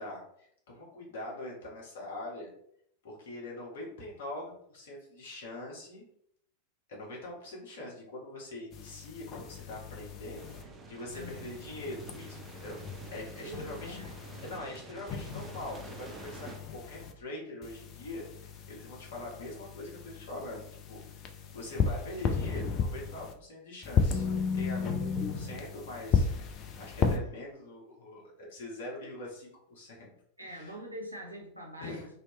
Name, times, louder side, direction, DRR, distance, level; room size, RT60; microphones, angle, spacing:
voice 1, 0.0-2.5 3.0-6.0 6.9-12.8 13.1-14.0 14.4-24.3 24.5-26.5 26.8-30.1 30.4-30.7 31.8-32.1, left 1 dB, 55° left, -3 dB, 1.3 m, -43 dB
sound 1, 8.7-10.6 11.1-14.6 15.1-17.1 17.6-23.3 23.8-27.2, left 5 dB, 35° left, 0.4 m, -34 dB
sound 2, 10.3-16.6, right 3 dB, 15° right, 0.5 m, -48 dB
voice 2, 13.4-14.1 30.4-32.1, equal, 85° right, -1 dB, 0.7 m, -43 dB
3.0 x 2.8 x 3.0 m, 0.70 s
figure-of-eight pair, 90°, 0 cm